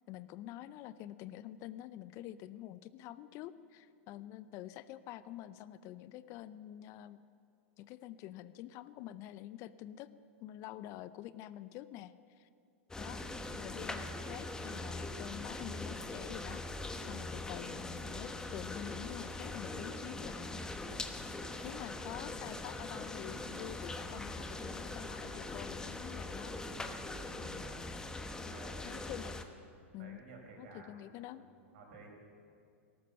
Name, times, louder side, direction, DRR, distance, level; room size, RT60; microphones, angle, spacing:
voice 1, 0.1-7.2 7.8-10.1 10.4-12.5 13.0-13.2 13.5-20.6 21.1-21.2 21.6-26.5 27.4-27.6 28.8-29.3 29.9-30.2 30.6-31.4, left 13 dB, 45° left, 15 dB, 0.6 m, -47 dB
sound 1, 12.9-29.4, left 2 dB, 10° left, 1.1 m, -42 dB
voice 2, 28.4-29.0 30.0-32.1, right 3 dB, 60° right, 1 dB, 5.1 m, -55 dB
18.0 x 14.0 x 5.6 m, 2.4 s
hypercardioid pair, 100°, 7 cm